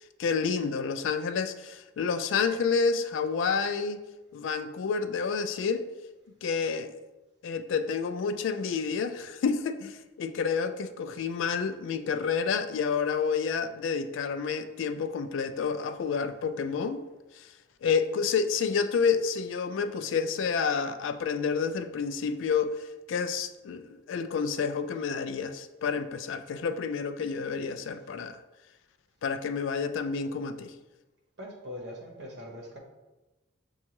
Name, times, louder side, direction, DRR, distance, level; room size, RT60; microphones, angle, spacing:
voice 1, 0.2-4.0 4.3-5.9 6.4-6.9 7.4-17.0 17.4-17.5 17.8-28.4 29.2-30.7, left 5 dB, 70° left, 10 dB, 0.3 m, -29 dB
voice 2, 31.4-32.8, left 1 dB, 55° right, -2 dB, 1.0 m, -41 dB
6.2 x 2.3 x 2.9 m, 1.1 s
head